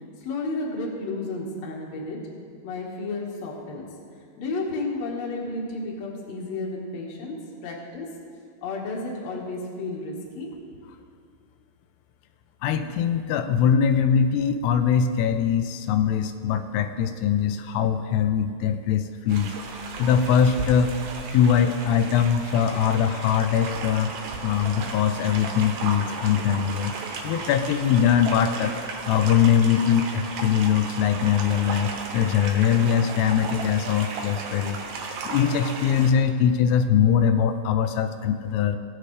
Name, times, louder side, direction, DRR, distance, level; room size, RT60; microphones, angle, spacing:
voice 1, 0.2-2.2 2.6-3.9 4.4-7.4 7.6-8.1 8.6-10.5, left 2 dB, 55° left, -2 dB, 2.2 m, -32 dB
voice 2, 12.6-19.5 20.0-20.9 21.3-24.1 24.4-27.0 27.2-28.8 29.0-34.8 35.3-38.8, left 8 dB, 90° left, 8 dB, 2.6 m, -22 dB
sound 1, 19.3-36.1, right 4 dB, 80° right, 1.7 m, -35 dB
18.5 x 6.7 x 3.2 m, 2.2 s
omnidirectional pair, 4.7 m